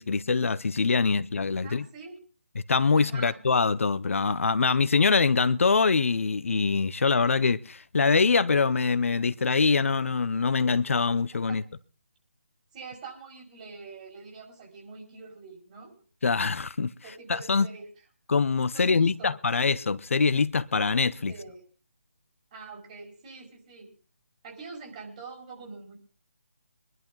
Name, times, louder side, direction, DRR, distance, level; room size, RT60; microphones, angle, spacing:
voice 1, 0.0-1.8 2.7-11.6 16.2-16.9 17.3-17.7 18.3-21.3, left 4 dB, 65° left, 0.8 m, -24 dB
voice 2, 1.6-2.2 3.0-3.4 11.5-11.6 12.7-15.9 17.0-17.9 18.7-19.3 21.3-21.6 22.5-23.9 24.4-26.0, right 4 dB, 30° right, 5.2 m, -44 dB
24.5 x 11.0 x 3.9 m
figure-of-eight pair, 155°, 8 cm